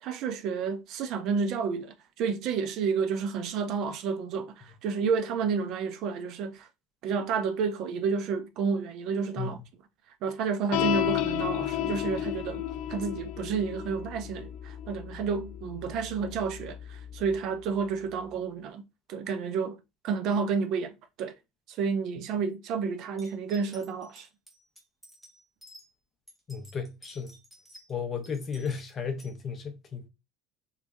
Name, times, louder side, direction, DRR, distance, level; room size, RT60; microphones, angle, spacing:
voice 1, 0.0-6.7 7.0-9.6 10.2-12.6 12.9-19.8 20.0-21.3 21.7-24.3, right 5 dB, 45° right, 0.5 m, -30 dB
sound 1, 10.7-17.4, left 12 dB, 60° left, 0.3 m, -33 dB
sound 2, 23.2-25.9 26.3-27.9 28.2-29.3, equal, ahead, 1.2 m, -53 dB
voice 2, 26.5-27.4 27.9-30.1, left 6 dB, 25° left, 0.6 m, -34 dB
3.1 x 2.6 x 3.4 m
cardioid pair, 170°, 0 cm